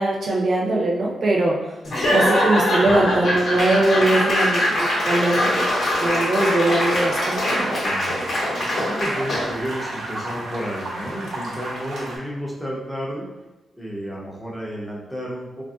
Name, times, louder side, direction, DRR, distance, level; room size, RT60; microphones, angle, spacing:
voice 1, 0.0-1.5 2.1-7.8, right 2 dB, 50° right, -3 dB, 0.7 m, -21 dB
Laughter / Applause / Crowd, 1.8-9.6, left 1 dB, 50° left, 0.8 m, -22 dB
sound 1, 6.6-12.2, right 1 dB, 90° right, 0.8 m, -33 dB
voice 2, 7.8-8.2 8.7-13.3 13.7-15.6, equal, 5° left, -4 dB, 0.6 m, -31 dB
3.3 x 2.6 x 2.3 m, 1.1 s
wide cardioid pair, 165°, 0 cm